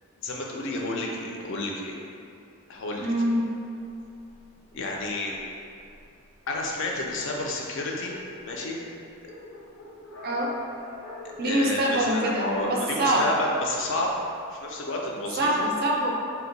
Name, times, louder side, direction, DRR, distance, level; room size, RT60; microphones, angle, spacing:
voice 1, 0.2-2.0 2.7-3.1 4.7-5.4 6.5-8.2 8.5-8.8 11.4-14.1 14.5-15.7, left 2 dB, 55° left, -1 dB, 0.4 m, -30 dB
voice 2, 3.0-3.5 10.2-10.5 11.4-13.3 15.4-16.1, right 1 dB, 45° right, -1 dB, 0.4 m, -25 dB
Dog, 3.4-6.3 7.0-7.1 7.4-7.5 7.7-14.1, left 2 dB, 80° left, 0.8 m, -44 dB
2.7 x 2.2 x 3.8 m, 2.6 s
head